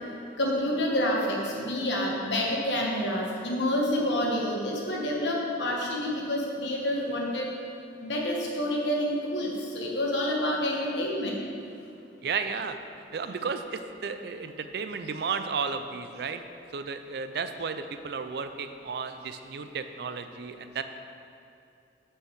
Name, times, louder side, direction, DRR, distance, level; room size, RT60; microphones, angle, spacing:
voice 1, 0.4-7.5 8.0-11.3, left 1 dB, 80° left, -1 dB, 1.3 m, -28 dB
voice 2, 12.2-12.8 13.1-16.4 16.7-20.8, right 5 dB, 60° right, 9 dB, 0.4 m, -33 dB
6.4 x 4.6 x 6.4 m, 2.6 s
head